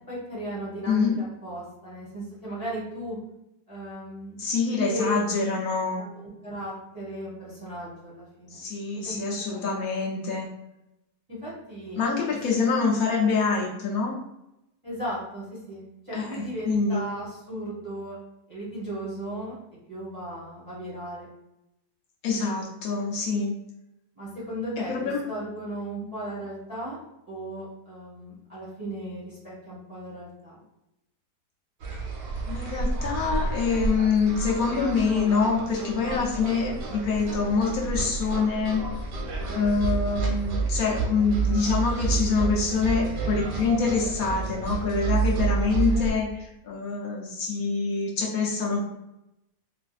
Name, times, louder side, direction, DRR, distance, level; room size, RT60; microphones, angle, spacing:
voice 1, 0.1-3.2 3.7-4.4 4.9-5.2 5.9-8.6 9.0-9.2 9.5-9.6 11.3-12.0 14.8-18.1 18.5-19.6 19.9-21.3 24.1-27.0 27.3-30.6, right 1 dB, 25° right, -8 dB, 0.9 m, -36 dB
voice 2, 0.9-1.2 4.4-6.0 8.5-10.5 12.0-14.2 16.1-17.0 22.2-23.6 24.8-25.3 26.0-26.1 32.5-38.8 39.5-48.8, left 4 dB, 65° left, -2 dB, 1.0 m, -25 dB
sound 1, 31.8-46.1, right 4 dB, 90° right, 1.3 m, -29 dB
3.9 x 2.5 x 2.3 m, 0.88 s
omnidirectional pair, 1.8 m